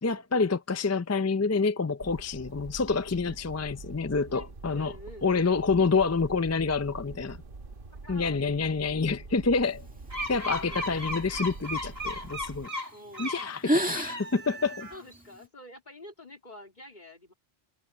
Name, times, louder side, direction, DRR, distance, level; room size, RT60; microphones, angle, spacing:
voice 1, 0.0-4.9 5.2-7.4 8.1-9.8 10.3-12.7 13.2-14.9, left 4 dB, 25° left, 0.3 m, -27 dB
sound 1, 2.0-12.7, right 3 dB, 55° right, 1.6 m, -45 dB
voice 2, 4.3-5.5 7.9-8.4 10.4-10.8 12.9-13.3 13.9-14.0 14.9-17.3, left 1 dB, 50° left, 3.2 m, -48 dB
sound 2, 9.7-12.3 12.9-13.2 13.5-15.5, equal, 10° right, 2.0 m, -33 dB
sound 3, 10.1-13.5 14.0-15.2, equal, 80° right, 3.2 m, -36 dB
omnidirectional pair, 1.0 m